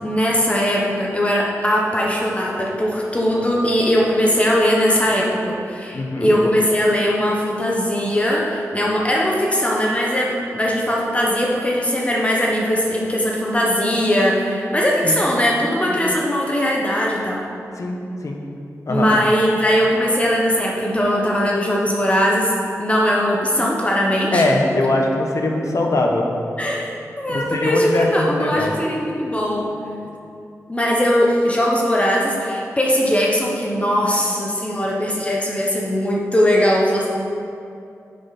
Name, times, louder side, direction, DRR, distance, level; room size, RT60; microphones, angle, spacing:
voice 1, 0.0-17.4 18.9-22.5 22.8-24.4 26.6-26.9 27.2-29.7 30.7-37.1, equal, 20° left, -2 dB, 1.2 m, -20 dB
voice 2, 5.9-6.3 15.0-15.2 15.6-16.0 17.8-18.4 18.9-19.1 24.3-26.3 27.3-28.7, left 2 dB, 65° left, 1 dB, 1.2 m, -21 dB
9.3 x 7.7 x 4.2 m, 2.5 s
wide cardioid pair, 80°, 6 cm